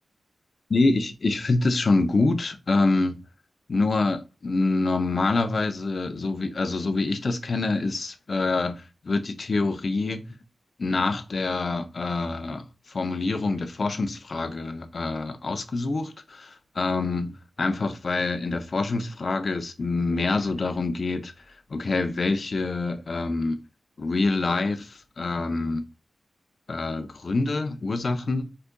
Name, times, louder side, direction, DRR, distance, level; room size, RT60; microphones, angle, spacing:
voice 1, 0.7-3.2 3.7-10.2 10.8-21.3 21.7-23.6 24.0-25.8 26.7-28.5, left 3 dB, 60° left, 0.5 m, -26 dB
4.7 x 2.5 x 2.2 m
cardioid pair, 55°, 0 cm